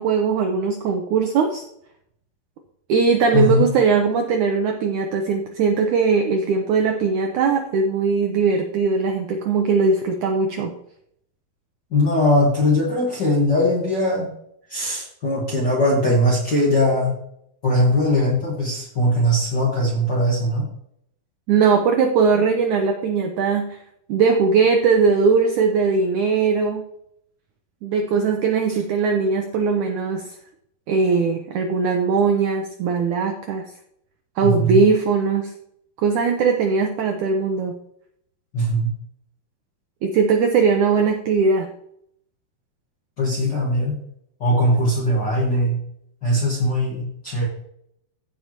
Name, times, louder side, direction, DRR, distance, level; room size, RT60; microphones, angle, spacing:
voice 1, 0.0-1.6 2.9-10.7 21.5-23.8 24.1-26.8 27.8-30.3 30.9-33.6 34.4-35.5 36.0-37.8 40.0-41.7, right 5 dB, 85° right, 4 dB, 1.7 m, -20 dB
voice 2, 3.3-3.6 11.9-14.3 14.7-17.1 17.6-20.6 34.4-34.8 38.5-38.9 43.2-44.0 44.4-45.8 46.2-47.5, left 1 dB, 50° left, -4 dB, 1.3 m, -20 dB
15.5 x 5.6 x 3.0 m, 0.73 s
omnidirectional pair, 4.5 m